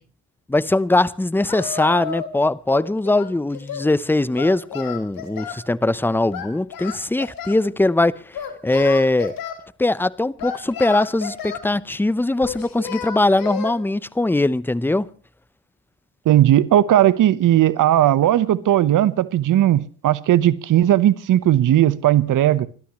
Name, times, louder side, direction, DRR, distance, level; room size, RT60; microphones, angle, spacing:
voice 1, 0.5-9.3 9.8-15.1, left 2 dB, 5° left, 0.7 m, -21 dB
Singing, 1.5-2.4 2.7-3.9 4.4-5.6 6.3-7.6 8.3-9.6 10.4-11.7 12.4-13.7, left 7 dB, 60° left, 3.7 m, -32 dB
voice 2, 16.3-22.7, right 12 dB, 55° right, 1.1 m, -17 dB
28.5 x 12.5 x 3.1 m
supercardioid pair, 70°, 38 cm